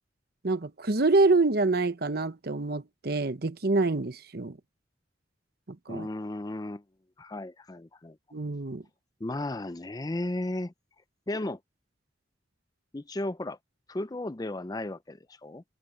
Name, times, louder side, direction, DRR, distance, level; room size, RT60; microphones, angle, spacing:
voice 1, 0.4-4.6 5.7-6.1 8.3-8.8, right 3 dB, 55° right, 1.0 m, -26 dB
voice 2, 5.9-6.8 7.2-8.2 9.2-10.7 11.3-11.6 12.9-13.6 13.9-15.6, left 1 dB, 20° left, 0.5 m, -34 dB
head